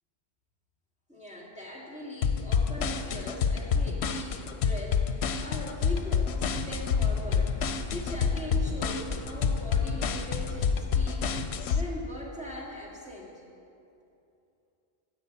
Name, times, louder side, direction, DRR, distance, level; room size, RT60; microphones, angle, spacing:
voice 1, 1.1-7.6 7.9-11.3 11.7-13.4, equal, 5° right, -4 dB, 1.7 m, -41 dB
sound 1, 2.2-11.8, left 6 dB, 85° left, 0.9 m, -27 dB
sound 2, 5.8-11.3, left 2 dB, 50° left, 1.7 m, -40 dB
12.5 x 5.0 x 8.4 m, 2.7 s
omnidirectional pair, 1.1 m